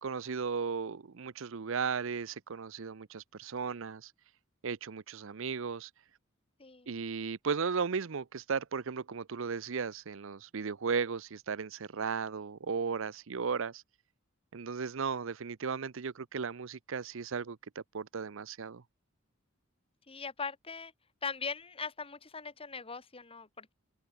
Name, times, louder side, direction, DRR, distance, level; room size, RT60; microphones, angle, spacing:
voice 1, 0.0-4.1 4.6-5.9 6.9-13.8 14.5-17.6 17.9-18.8, right 5 dB, 65° right, 0.6 m, -35 dB
voice 2, 20.1-20.9 21.2-23.7, left 5 dB, 25° left, 1.7 m, -40 dB
head